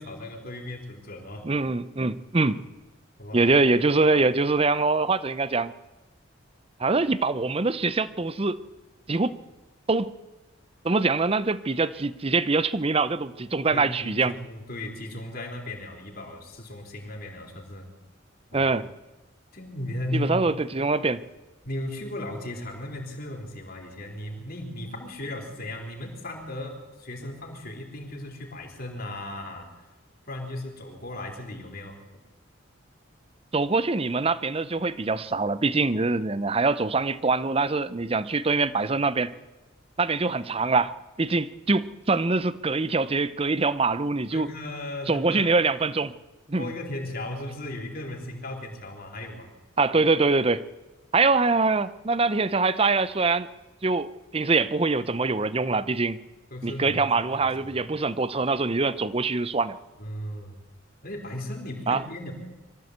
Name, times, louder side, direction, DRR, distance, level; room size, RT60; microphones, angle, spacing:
voice 1, 0.0-1.5 3.2-3.5 13.7-17.9 18.5-18.7 19.5-20.5 21.6-29.7 30.3-32.2 44.3-45.5 46.6-49.5 56.5-57.7 60.0-60.6 61.0-62.3, left 1 dB, 45° left, 1 dB, 3.9 m, -36 dB
voice 2, 1.4-2.6 3.3-5.7 6.8-8.6 9.1-9.4 9.9-10.1 10.8-14.3 18.5-18.8 20.1-21.2 33.5-39.3 40.0-44.5 45.1-46.1 46.5-46.7 49.8-50.6 51.1-53.5 53.8-56.2 56.6-59.8 61.9-62.0, right 3 dB, 30° right, 16 dB, 0.6 m, -24 dB
23.0 x 14.0 x 8.1 m, 1.1 s
head